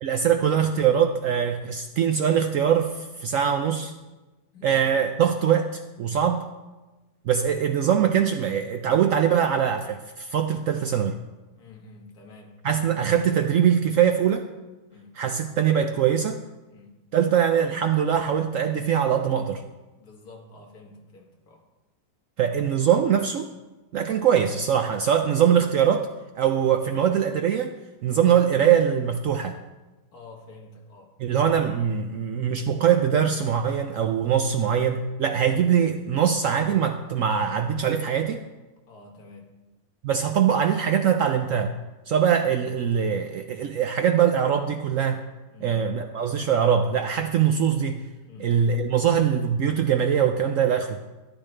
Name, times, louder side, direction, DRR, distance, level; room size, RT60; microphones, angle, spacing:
voice 1, 0.0-3.9 4.6-6.5 7.3-11.2 12.6-14.5 15.2-16.4 17.1-19.6 22.4-23.5 23.9-26.1 26.4-27.7 28.0-29.6 31.2-38.4 40.0-41.8 42.1-45.2 45.6-48.0 48.4-51.0, right 8 dB, 75° right, 6 dB, 0.7 m, -22 dB
voice 2, 4.5-5.0 11.5-12.6 14.9-15.2 16.7-17.0 20.0-21.6 28.1-28.2 30.1-31.1 38.9-39.5 45.5-45.8 48.2-48.6, left 3 dB, 60° left, 0 dB, 2.1 m, -48 dB
13.0 x 10.0 x 3.3 m, 1.1 s
omnidirectional pair, 1.9 m